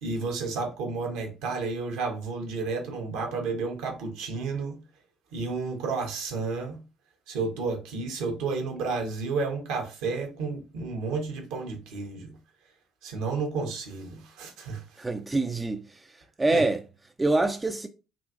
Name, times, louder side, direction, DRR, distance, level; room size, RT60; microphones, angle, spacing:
voice 1, 0.0-4.8 5.3-6.8 7.3-12.3 13.0-15.0 16.5-16.6, right 4 dB, 60° right, 0.8 m, -31 dB
voice 2, 15.0-16.1 16.4-16.8 17.2-17.9, right 2 dB, 15° right, 0.3 m, -25 dB
3.7 x 2.5 x 2.4 m
figure-of-eight pair, 55°, 0 cm